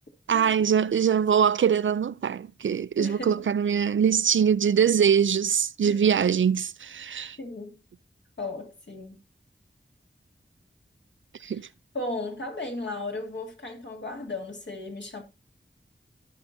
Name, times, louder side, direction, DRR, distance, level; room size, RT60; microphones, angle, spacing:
voice 1, 0.3-7.4 11.4-11.7, right 7 dB, 80° right, 0.4 m, -23 dB
voice 2, 3.0-3.5 5.8-6.2 7.4-7.8 8.4-9.2 11.5-11.6 11.9-15.2, left 2 dB, 65° left, 2.8 m, -35 dB
17.0 x 5.8 x 2.7 m
wide cardioid pair, 45°, 20 cm